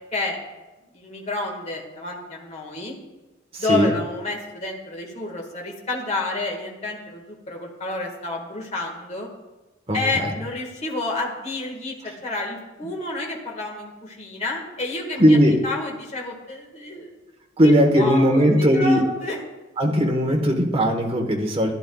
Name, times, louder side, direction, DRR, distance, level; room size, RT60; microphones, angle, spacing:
voice 1, 0.9-2.9 3.6-9.3 9.9-15.4 15.6-17.1 17.6-19.4, left 2 dB, 35° left, 0 dB, 1.7 m, -29 dB
voice 2, 3.5-3.9 9.9-10.3 15.2-15.6 17.6-19.0 19.8-21.7, equal, 30° right, 1 dB, 1.2 m, -18 dB
15.0 x 10.5 x 2.3 m, 1.1 s
head